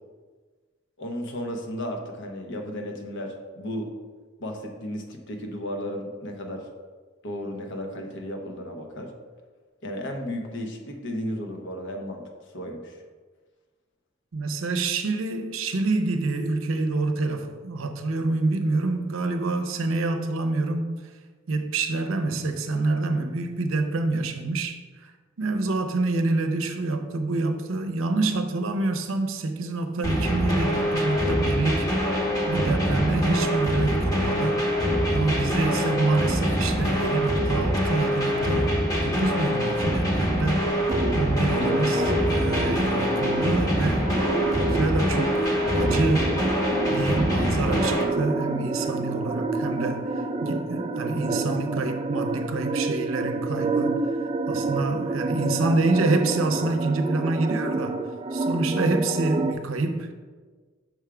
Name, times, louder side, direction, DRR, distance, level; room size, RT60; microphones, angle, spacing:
voice 1, 1.0-3.9 4.4-6.7 7.2-9.1 9.8-12.2 12.5-13.0, equal, 60° left, 0.9 m, -34 dB
voice 2, 14.3-21.0 21.5-24.8 25.0-25.1 25.4-31.9 32.5-34.6 35.1-38.7 39.0-40.7 41.1-44.1 44.6-46.4 46.9-54.0 54.5-58.0 58.3-60.1, right 2 dB, 70° right, 0.6 m, -27 dB
sound 1, 30.0-48.0, equal, 20° left, 1.0 m, -24 dB
sound 2, 40.9-59.5, right 3 dB, 25° right, 0.3 m, -29 dB
6.2 x 3.4 x 4.8 m
head